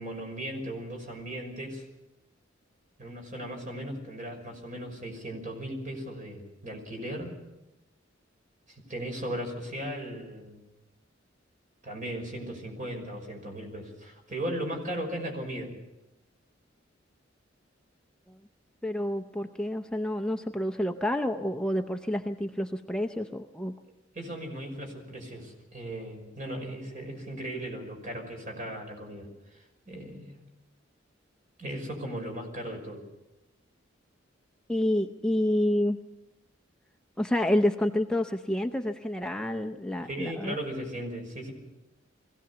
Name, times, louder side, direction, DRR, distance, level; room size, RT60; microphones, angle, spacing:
voice 1, 0.0-1.8 3.0-7.4 8.7-10.6 11.8-15.7 24.1-29.3 29.5-30.4 31.6-33.0 40.0-41.5, right 1 dB, 45° right, 3 dB, 5.8 m, -37 dB
voice 2, 18.8-23.7 34.7-36.0 37.2-40.6, left 1 dB, 5° left, 4 dB, 0.7 m, -28 dB
22.5 x 17.0 x 7.0 m, 0.95 s
head